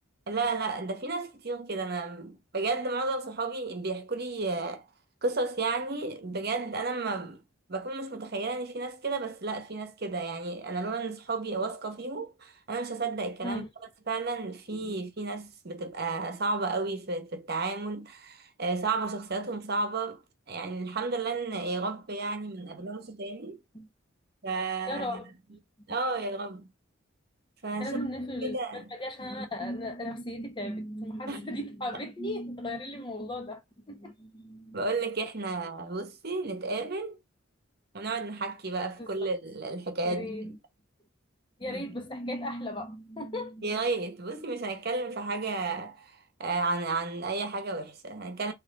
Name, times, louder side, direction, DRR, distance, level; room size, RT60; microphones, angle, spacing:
voice 1, 0.3-4.9 5.2-7.4 7.7-13.7 14.1-20.2 20.5-23.6 24.4-25.2 25.9-26.7 27.6-28.0 28.4-28.9 31.3-31.5 34.7-37.2 37.9-40.6 41.7-41.8 43.6-46.1 46.4-48.5, right 3 dB, 50° right, 1.0 m, -32 dB
voice 2, 24.9-25.6 27.8-33.6 33.9-34.7 39.0-39.1 40.0-40.6 41.6-43.8, left 1 dB, 25° left, 1.0 m, -36 dB
4.1 x 3.1 x 3.6 m
head